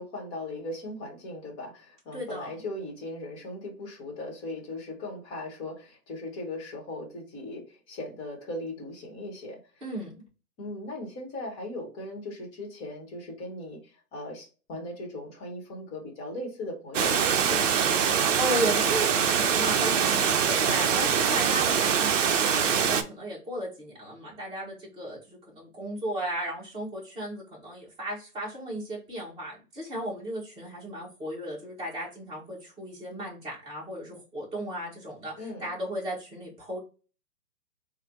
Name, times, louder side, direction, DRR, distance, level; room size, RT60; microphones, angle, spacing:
voice 1, 0.0-9.9 10.6-17.8 35.4-35.7, left 1 dB, 20° left, 1 dB, 1.0 m, -38 dB
voice 2, 2.1-2.5 9.8-10.2 18.4-22.2 22.5-35.3 35.6-36.8, equal, 15° right, -5 dB, 1.5 m, -35 dB
Water, 16.9-23.0, right 7 dB, 55° right, 0.6 m, -24 dB
3.3 x 2.1 x 4.2 m, 0.35 s
hypercardioid pair, 135°, 46 cm